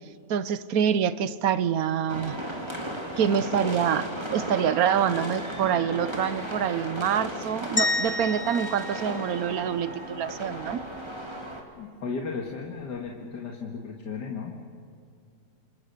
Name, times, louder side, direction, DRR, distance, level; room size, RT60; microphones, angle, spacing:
voice 1, 0.3-2.4 3.2-10.8, right 8 dB, 65° right, 15 dB, 1.2 m, -26 dB
sound 1, 2.1-11.6, right 1 dB, 15° right, 2.8 m, -35 dB
sound 2, 7.8-10.0, left 2 dB, 25° left, 1.2 m, -30 dB
voice 2, 11.8-14.6, left 5 dB, 75° left, 0 dB, 2.3 m, -35 dB
27.5 x 27.0 x 6.8 m, 2.4 s
omnidirectional pair, 1.8 m